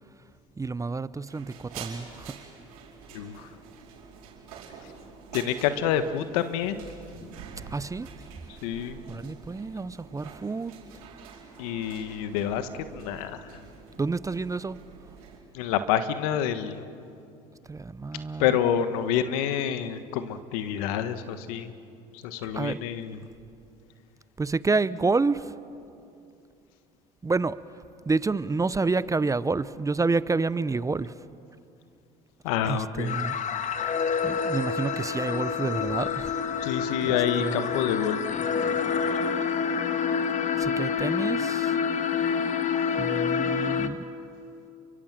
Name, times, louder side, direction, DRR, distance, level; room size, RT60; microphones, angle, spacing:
voice 1, 0.6-2.4 7.7-8.2 9.1-10.7 14.0-14.8 17.7-18.6 22.5-22.8 24.4-25.5 27.2-27.6 28.0-31.1 32.6-33.4 34.2-36.7 37.0-37.8 40.6-41.8 43.0-44.1, right 3 dB, 20° right, 17 dB, 0.7 m, -29 dB
sound 1, 1.2-15.4, right 6 dB, 85° right, 4.9 m, -46 dB
voice 2, 3.1-3.5 5.3-6.8 8.6-9.0 11.6-13.6 15.5-16.8 18.4-21.7 22.2-23.2 32.4-33.2 36.6-38.3, left 9 dB, 80° left, 11 dB, 1.4 m, -28 dB
sound 2, 33.1-43.9, left 6 dB, 40° left, 1.6 m, -27 dB
30.0 x 24.0 x 7.5 m, 2.6 s
supercardioid pair, 75°, 18 cm